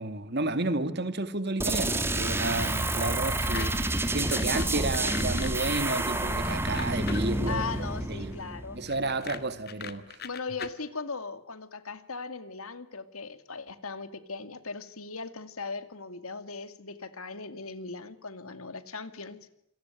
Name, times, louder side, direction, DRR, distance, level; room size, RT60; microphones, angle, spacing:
voice 1, 0.0-3.7 4.1-7.6 8.1-8.3 8.7-10.2, right 2 dB, 50° right, 11 dB, 2.5 m, -31 dB
sound 1, 1.6-9.2, right 2 dB, 10° right, 2.5 m, -29 dB
sound 2, 3.4-3.7 4.0-7.4 8.9-10.7, left 6 dB, 45° left, 2.0 m, -39 dB
voice 2, 7.4-8.8 10.2-19.5, left 4 dB, 85° left, 11 dB, 2.4 m, -38 dB
28.0 x 22.5 x 9.3 m, 0.74 s
head